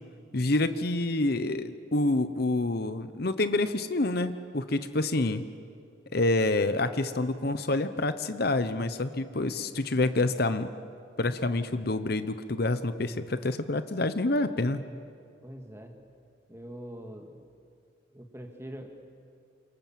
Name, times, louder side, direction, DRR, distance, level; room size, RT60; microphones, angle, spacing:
voice 1, 0.3-5.4 6.1-10.7 11.2-14.8, left 2 dB, 50° left, 11 dB, 0.9 m, -27 dB
voice 2, 15.4-15.9 16.5-17.4 18.1-18.9, right 1 dB, 15° right, 4 dB, 2.2 m, -43 dB
29.0 x 26.5 x 7.6 m, 2.4 s
head